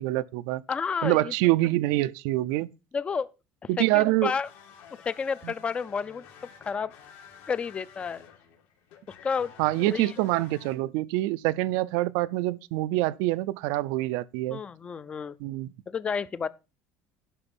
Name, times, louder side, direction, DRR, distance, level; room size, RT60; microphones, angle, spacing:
voice 1, 0.0-0.6 1.0-2.7 3.7-4.3 5.4-5.5 9.6-14.6 15.4-15.7, right 18 dB, 80° right, 0.5 m, -25 dB
voice 2, 0.7-1.3 2.9-3.3 3.8-4.5 5.1-6.2 6.7-6.9 7.5-8.2 9.2-9.5 9.8-10.1 14.5-15.3 15.9-16.5, left 6 dB, 20° left, 0.4 m, -30 dB
sound 1, 4.4-10.7, left 8 dB, 75° left, 3.0 m, -51 dB
11.0 x 5.9 x 5.3 m
cardioid pair, 160°, 6 cm